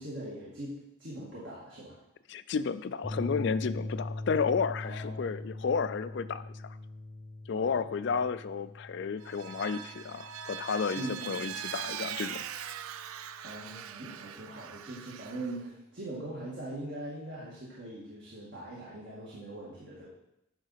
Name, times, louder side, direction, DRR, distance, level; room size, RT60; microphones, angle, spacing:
voice 1, 0.0-2.0 4.8-5.6 7.5-8.2 10.9-11.4 13.4-20.1, right 1 dB, 55° right, -7 dB, 1.9 m, -42 dB
voice 2, 2.3-6.4 7.5-12.4, left 5 dB, 55° left, 14 dB, 0.3 m, -32 dB
sound 1, 3.0-11.5, left 2 dB, 15° left, 0.9 m, -41 dB
Vehicle, 9.2-15.6, right 9 dB, 85° right, 0.4 m, -41 dB
10.5 x 4.0 x 5.7 m, 0.85 s
head